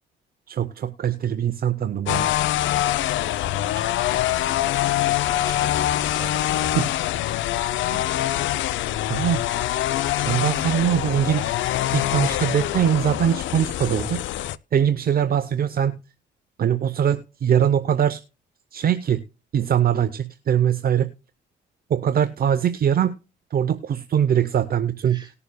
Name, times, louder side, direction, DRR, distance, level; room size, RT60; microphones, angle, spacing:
voice 1, 0.5-2.3 6.7-6.9 7.9-8.0 9.1-9.4 10.3-11.4 11.9-14.2 14.7-16.0 16.6-18.2 18.7-19.2 19.5-21.1 21.9-23.2 23.5-25.3, right 9 dB, 50° right, 0.7 m, -22 dB
sound 1, 2.1-14.6, left 13 dB, 75° left, 0.4 m, -24 dB
voice 2, 3.4-4.3 4.9-6.9 25.1-25.3, right 3 dB, 20° right, 2.1 m, -44 dB
19.0 x 6.9 x 2.2 m
cardioid pair, 90°, 20 cm